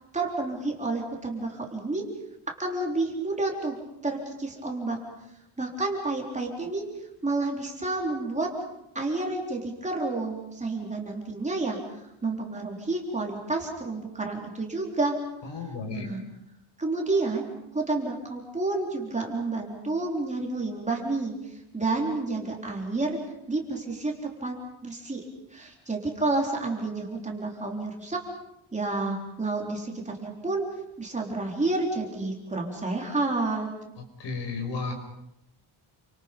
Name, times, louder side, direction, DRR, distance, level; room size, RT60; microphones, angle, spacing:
voice 1, 0.1-2.0 2.6-3.8 4.0-5.0 5.6-6.9 7.2-8.5 8.9-11.8 12.2-15.2 15.9-16.2 16.8-17.5 17.7-21.3 21.7-23.2 23.5-24.1 24.4-24.6 24.8-25.2 25.5-28.2 28.7-30.6 31.0-33.7, right 3 dB, 15° right, 0 dB, 3.9 m, -29 dB
voice 2, 15.4-16.1 33.9-34.9, left 4 dB, 60° left, 4 dB, 5.8 m, -33 dB
29.5 x 26.0 x 5.4 m, 0.82 s
cardioid pair, 175°, 47 cm